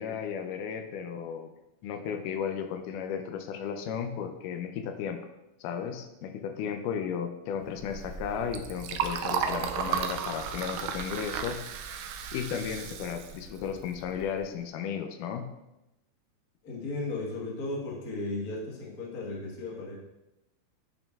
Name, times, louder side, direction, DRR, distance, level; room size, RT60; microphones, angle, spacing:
voice 1, 0.0-1.5 1.8-5.2 5.6-15.5, left 7 dB, 80° left, 6 dB, 2.1 m, -34 dB
Liquid, 7.7-14.4, right 7 dB, 85° right, 2.1 m, -34 dB
voice 2, 16.6-20.0, left 2 dB, 55° left, -3 dB, 1.0 m, -35 dB
8.9 x 5.8 x 2.3 m, 0.94 s
omnidirectional pair, 3.8 m